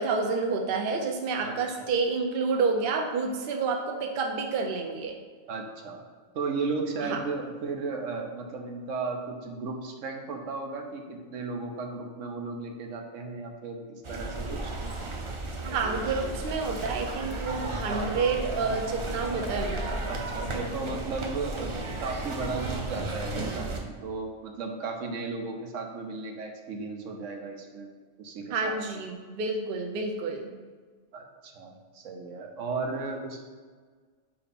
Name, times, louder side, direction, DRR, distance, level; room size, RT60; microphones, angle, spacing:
voice 1, 0.0-5.2 7.0-7.2 15.6-20.0 28.5-30.5, right 4 dB, 55° right, 2 dB, 0.8 m, -29 dB
voice 2, 1.4-1.9 5.5-6.0 6.3-14.7 17.9-18.2 20.1-27.9 28.2-29.0 31.1-33.4, right 4 dB, 75° right, 3 dB, 1.1 m, -35 dB
sound 1, 14.0-23.8, right 2 dB, 35° right, 0.5 m, -34 dB
8.5 x 2.9 x 4.1 m, 1.5 s
omnidirectional pair, 1.3 m